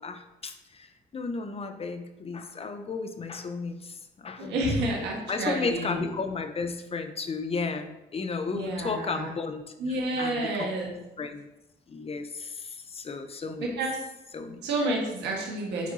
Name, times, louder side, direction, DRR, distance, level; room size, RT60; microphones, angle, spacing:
voice 1, 0.0-4.6 5.0-10.7 11.2-11.5 11.9-13.7 14.3-14.6, left 4 dB, 35° left, 8 dB, 0.7 m, -34 dB
voice 2, 4.4-6.1 8.5-9.3 9.8-10.9 13.6-13.9 14.6-15.9, right 2 dB, 80° right, -1 dB, 1.5 m, -29 dB
8.2 x 4.5 x 2.8 m, 0.95 s
supercardioid pair, 70°, 17 cm